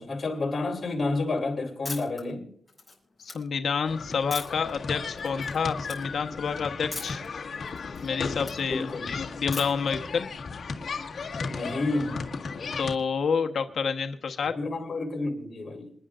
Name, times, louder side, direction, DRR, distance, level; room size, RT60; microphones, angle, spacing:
voice 1, 0.0-2.5 8.7-9.2 11.5-12.3 14.5-15.9, left 2 dB, 35° left, 3.9 m, -30 dB
sound 1, 1.8-2.2 2.7-3.3 4.3-4.7 5.2-5.6 5.8-6.0 6.9-7.3 7.6-8.6 9.5-9.9, left 3 dB, 10° left, 7.1 m, -38 dB
voice 2, 3.2-7.2 8.0-10.3 12.8-14.6, left 6 dB, 70° left, 1.2 m, -29 dB
sound 2, 3.9-12.9, left 4 dB, 55° left, 1.8 m, -35 dB
28.0 x 10.0 x 2.5 m
wide cardioid pair, 170°, 0 cm